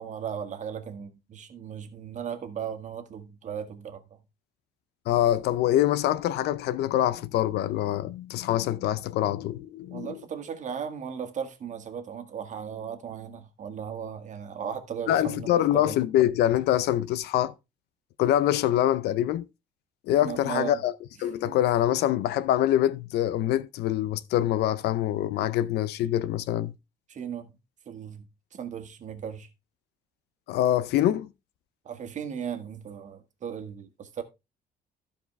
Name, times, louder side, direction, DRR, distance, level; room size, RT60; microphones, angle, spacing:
voice 1, 0.0-4.2 9.9-16.0 20.2-20.8 21.4-21.6 27.1-27.5 27.8-29.5 31.8-34.2, right 8 dB, 45° right, 1.7 m, -37 dB
voice 2, 5.1-10.2 15.1-17.5 18.2-19.5 20.1-20.9 21.2-26.7 30.5-31.3, left 12 dB, 75° left, 0.6 m, -25 dB
14.5 x 4.9 x 3.3 m
cardioid pair, 110°, 17 cm